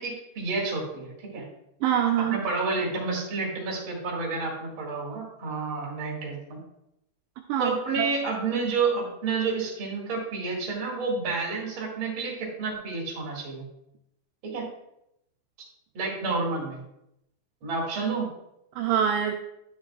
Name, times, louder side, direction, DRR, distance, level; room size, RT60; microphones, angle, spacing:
voice 1, 0.0-1.4 2.3-6.6 7.6-13.6 14.4-14.7 15.9-16.8 17.6-18.3, right 4 dB, 40° right, -3 dB, 2.2 m, -30 dB
voice 2, 1.8-2.4 7.5-8.1 18.8-19.3, right 9 dB, 80° right, 3 dB, 2.0 m, -25 dB
10.5 x 6.3 x 2.4 m, 0.81 s
omnidirectional pair, 4.1 m